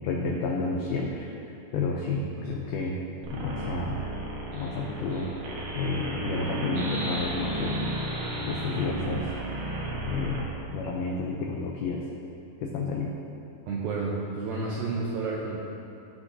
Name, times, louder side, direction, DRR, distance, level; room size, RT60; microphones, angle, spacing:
voice 1, 0.0-1.3 1.7-3.0 3.3-4.0 4.5-5.3 5.8-7.8 8.5-9.3 10.1-12.0 12.6-13.1, left 3 dB, 80° left, -1 dB, 2.3 m, -30 dB
voice 2, 2.3-2.6 13.7-15.6, right 3 dB, 90° right, -4 dB, 2.0 m, -31 dB
sound 1, 3.2-10.4, right 1 dB, 65° right, 2.6 m, -33 dB
17.5 x 6.0 x 2.7 m, 2.8 s
omnidirectional pair, 5.0 m